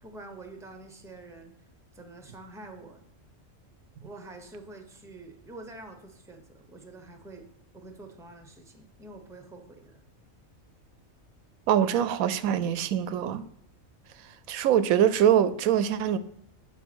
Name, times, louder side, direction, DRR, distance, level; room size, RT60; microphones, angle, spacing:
voice 1, 0.0-1.5 1.9-3.0 4.0-7.5 7.7-10.0, right 2 dB, 5° right, 6 dB, 0.8 m, -46 dB
voice 2, 11.7-13.4 14.5-16.2, right 9 dB, 85° right, 14 dB, 1.0 m, -23 dB
7.2 x 5.7 x 6.1 m, 0.76 s
omnidirectional pair, 1.4 m